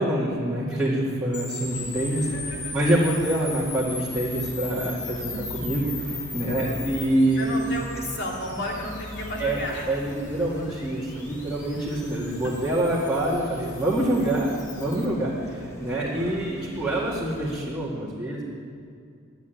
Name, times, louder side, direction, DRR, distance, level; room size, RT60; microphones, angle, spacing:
voice 1, 0.0-2.3 2.7-7.6 9.4-9.6 9.9-18.4, right 1 dB, 5° right, -11 dB, 2.1 m, -26 dB
sound 1, 1.3-15.0, left 4 dB, 40° left, 1.8 m, -39 dB
sound 2, 1.6-17.5, equal, 15° left, 1.4 m, -43 dB
voice 2, 2.1-2.7 6.4-6.7 7.4-9.9 11.8-12.0, left 1 dB, 65° left, -2 dB, 2.7 m, -33 dB
11.0 x 9.3 x 9.2 m, 2.3 s
head